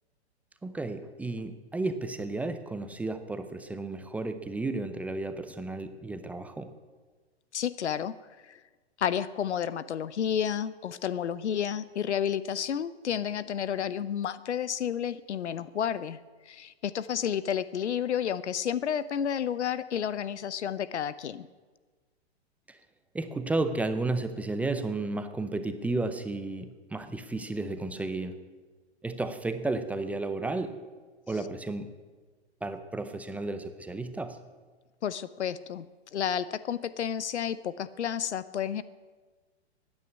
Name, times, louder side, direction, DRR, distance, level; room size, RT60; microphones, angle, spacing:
voice 1, 0.6-6.7 22.7-22.8 23.1-28.4 29.0-30.8 31.3-31.9 32.6-34.4, right 2 dB, 5° right, 8 dB, 0.5 m, -33 dB
voice 2, 7.5-8.2 8.5-8.6 9.0-16.2 16.5-21.5 35.0-35.8 36.1-38.8, left 8 dB, 90° left, 17 dB, 0.8 m, -31 dB
15.0 x 9.8 x 9.5 m, 1.4 s
hypercardioid pair, 135°, 33 cm